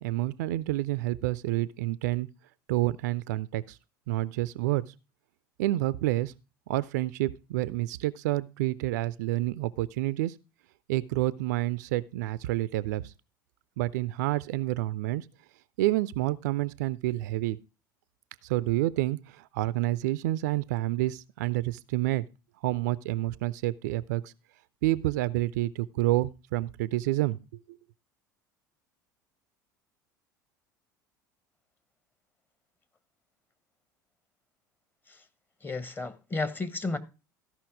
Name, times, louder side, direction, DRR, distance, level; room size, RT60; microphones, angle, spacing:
voice 1, 0.0-2.3 2.7-3.8 4.1-4.8 5.6-6.3 6.7-10.3 10.9-13.1 13.8-15.3 15.8-17.6 18.4-22.3 22.6-24.3 24.8-27.4 27.7-27.8, right 16 dB, 60° right, 0.4 m, -28 dB
voice 2, 35.6-37.0, left 3 dB, 20° left, 1.1 m, -32 dB
14.0 x 5.7 x 4.6 m
figure-of-eight pair, 70°, 11 cm